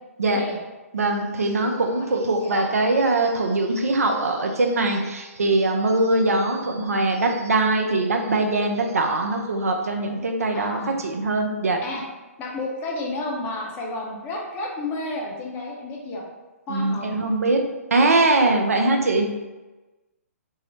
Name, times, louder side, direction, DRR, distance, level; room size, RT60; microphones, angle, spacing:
voice 1, 0.9-11.8 16.7-17.6 17.9-19.3, right 2 dB, 75° right, 3 dB, 0.4 m, -22 dB
voice 2, 10.5-11.0 11.8-12.0 12.4-16.2 16.7-17.2, left 2 dB, 25° left, -2 dB, 0.5 m, -31 dB
2.7 x 2.0 x 3.0 m, 1.2 s
figure-of-eight pair, 125°, 8 cm